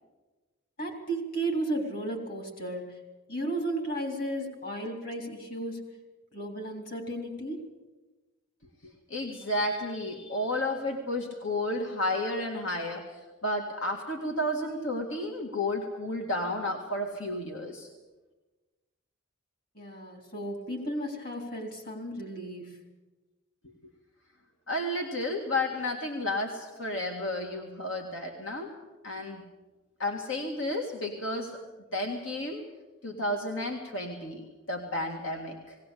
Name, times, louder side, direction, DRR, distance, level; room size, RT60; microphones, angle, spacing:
voice 1, 0.8-3.0 3.3-5.9 6.3-7.7 19.7-22.8, right 1 dB, 45° left, 4 dB, 3.8 m, -34 dB
voice 2, 8.8-17.9 24.7-28.7 29.0-29.5 30.0-31.6 31.9-32.6 33.0-35.8, left 1 dB, 70° left, 2 dB, 2.0 m, -32 dB
19.5 x 18.0 x 8.4 m, 1.2 s
head